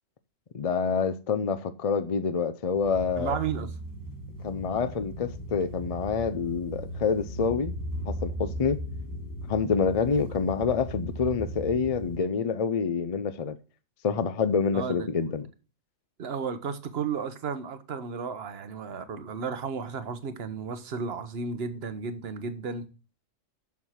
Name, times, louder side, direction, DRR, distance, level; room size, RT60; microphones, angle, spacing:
voice 1, 0.5-3.4 4.4-7.8 8.1-8.8 9.5-13.6 14.0-15.5, left 5 dB, 50° left, 0.4 m, -27 dB
sound 1, 2.7-12.2, equal, 15° left, 1.5 m, -37 dB
voice 2, 3.2-3.7 14.7-15.3 16.2-22.9, right 6 dB, 55° right, 1.1 m, -33 dB
7.2 x 6.4 x 5.6 m
omnidirectional pair, 1.3 m